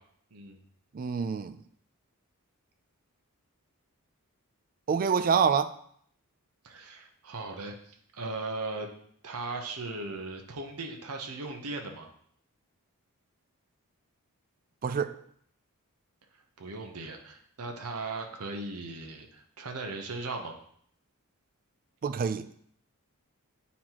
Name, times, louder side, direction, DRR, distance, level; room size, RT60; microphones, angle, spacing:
voice 1, 0.9-1.5 4.9-5.7 14.8-15.1 22.0-22.5, right 6 dB, 40° right, 0.4 m, -26 dB
voice 2, 6.6-8.9 9.2-12.1 16.6-20.5, right 3 dB, 75° right, 0.9 m, -38 dB
9.2 x 4.1 x 2.9 m
head